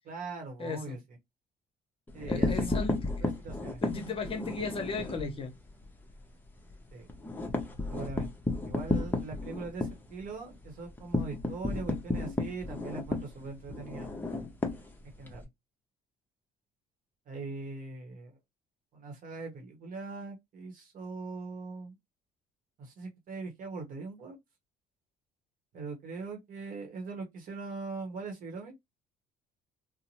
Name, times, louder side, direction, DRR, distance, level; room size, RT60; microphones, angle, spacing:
voice 1, 0.0-1.0 2.1-2.7 3.2-3.8 6.9-7.1 7.9-8.3 8.6-14.1 15.2-15.5 17.3-18.3 18.9-21.9 22.8-24.4 25.7-28.7, right 3 dB, 55° right, 0.9 m, -41 dB
voice 2, 0.6-1.0 2.3-3.2 3.8-5.5, left 4 dB, 35° left, 0.9 m, -35 dB
sound 1, 2.1-5.3 5.7-5.8 6.1-6.2 6.6-15.4, left 2 dB, 10° left, 0.7 m, -33 dB
2.7 x 2.1 x 2.9 m
cardioid pair, 110°, 17 cm